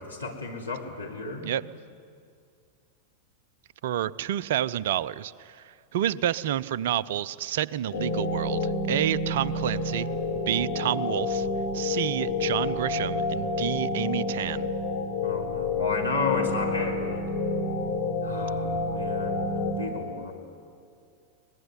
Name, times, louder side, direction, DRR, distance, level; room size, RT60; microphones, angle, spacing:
voice 1, 0.0-1.5 15.2-17.2 18.2-20.3, left 3 dB, 85° left, -1 dB, 3.3 m, -33 dB
voice 2, 3.8-10.1 10.5-11.5 11.7-14.7, right 11 dB, 55° right, 20 dB, 0.5 m, -29 dB
sound 1, 7.9-19.7, left 3 dB, 60° left, 4.3 m, -29 dB
24.0 x 20.0 x 9.7 m, 2.3 s
figure-of-eight pair, 90°, 0 cm